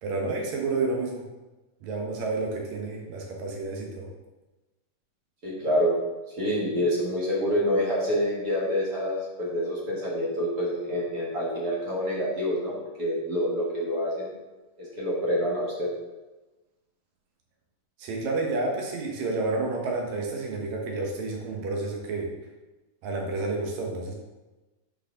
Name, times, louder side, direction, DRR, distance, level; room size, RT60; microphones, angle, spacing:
voice 1, 0.0-1.3 1.8-4.1 18.0-22.3 23.0-24.1, right 3 dB, 65° right, 0 dB, 2.3 m, -30 dB
voice 2, 5.4-5.9 6.4-14.3 14.8-15.9, equal, 40° right, -5 dB, 1.5 m, -27 dB
7.3 x 4.9 x 3.7 m, 1.1 s
omnidirectional pair, 3.9 m